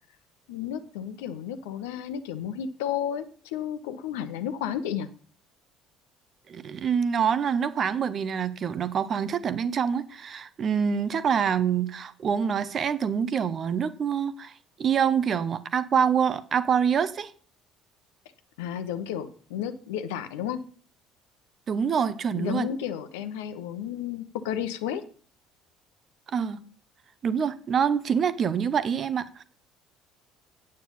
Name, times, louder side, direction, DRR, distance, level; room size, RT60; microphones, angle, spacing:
voice 1, 0.5-5.1 18.6-20.6 22.3-25.0, left 9 dB, 65° left, 0.9 m, -32 dB
voice 2, 6.5-14.5 14.8-17.3 21.7-22.7 26.3-26.6 27.2-29.4, right 7 dB, 40° right, 0.8 m, -26 dB
8.9 x 8.9 x 5.6 m
figure-of-eight pair, 55°, 0 cm